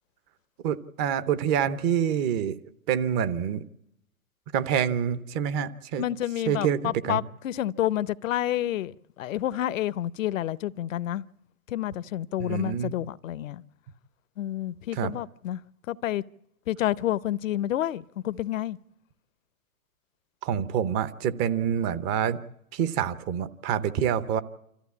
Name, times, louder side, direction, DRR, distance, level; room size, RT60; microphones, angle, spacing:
voice 1, 0.6-2.6 2.9-3.6 4.5-6.0 6.5-7.2 12.4-12.9 15.0-15.1 20.4-22.4 22.7-24.4, right 9 dB, 25° right, 0.8 m, -26 dB
voice 2, 6.0-11.2 11.7-13.6 14.4-15.6 15.9-16.2 16.7-18.8, left 13 dB, 60° left, 0.7 m, -29 dB
26.0 x 14.5 x 8.4 m
hypercardioid pair, 130°, 44 cm